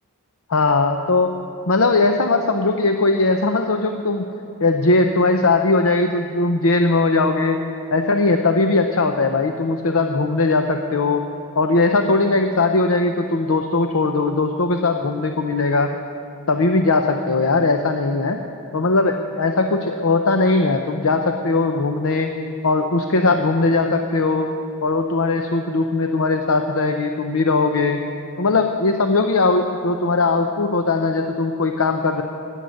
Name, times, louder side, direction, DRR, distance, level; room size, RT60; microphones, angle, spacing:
voice 1, 0.5-1.3 1.7-4.3 4.6-7.6 7.9-11.3 11.6-15.9 16.5-18.4 18.7-22.3 22.6-24.5 24.8-28.0 28.4-32.2, left 3 dB, 65° left, 5 dB, 0.7 m, -19 dB
16.0 x 11.0 x 6.5 m, 2.9 s
head